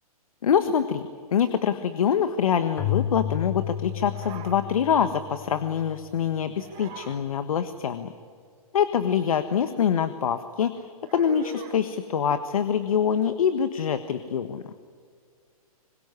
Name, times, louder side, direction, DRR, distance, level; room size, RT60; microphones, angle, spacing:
voice 1, 0.4-8.1 8.7-14.6, left 8 dB, 70° left, 10 dB, 1.5 m, -25 dB
Keyboard (musical), 2.8-6.3, left 11 dB, 10° left, 1.5 m, -32 dB
sound 1, 4.1-4.6 6.6-7.2 11.0-11.8, right 4 dB, 35° right, 4.7 m, -41 dB
26.0 x 22.5 x 9.9 m, 2.1 s
hypercardioid pair, 130°, 19 cm